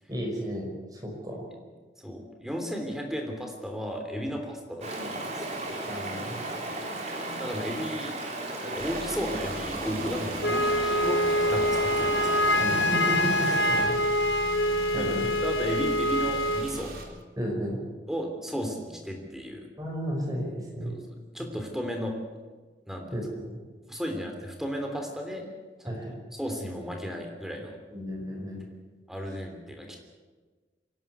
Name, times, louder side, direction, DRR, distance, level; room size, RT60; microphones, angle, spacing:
voice 1, 0.1-1.5 4.3-4.4 5.9-6.4 12.6-14.0 14.9-15.3 17.4-17.8 19.8-21.0 21.5-21.6 23.1-23.6 25.9-26.2 27.9-28.6, equal, 20° right, 0 dB, 5.5 m, -33 dB
voice 2, 2.0-5.9 7.0-8.1 8.6-12.6 13.4-13.6 14.9-15.1 15.4-16.9 18.1-19.7 20.9-21.0 21.3-22.1 22.9-23.1 23.9-25.5 25.8-25.9 26.4-27.8 29.1-30.0, equal, ahead, 2 dB, 3.2 m, -34 dB
Stream, 4.8-13.8, right 2 dB, 40° right, 3.7 m, -35 dB
Car / Engine, 8.8-17.0, right 2 dB, 55° right, 3.7 m, -40 dB
Wind instrument woodwind instrument, 10.4-16.7, left 1 dB, 85° left, 1.3 m, -25 dB
26.0 x 11.5 x 9.6 m, 1.4 s
head